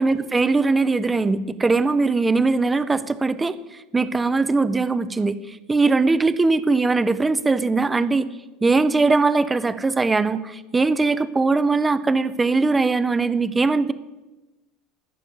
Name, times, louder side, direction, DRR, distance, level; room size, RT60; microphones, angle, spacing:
voice 1, 0.0-3.6 3.9-8.3 8.6-13.9, right 3 dB, 10° right, 14 dB, 0.5 m, -20 dB
14.0 x 6.8 x 9.3 m, 1.1 s
cardioid pair, 180°, 0 cm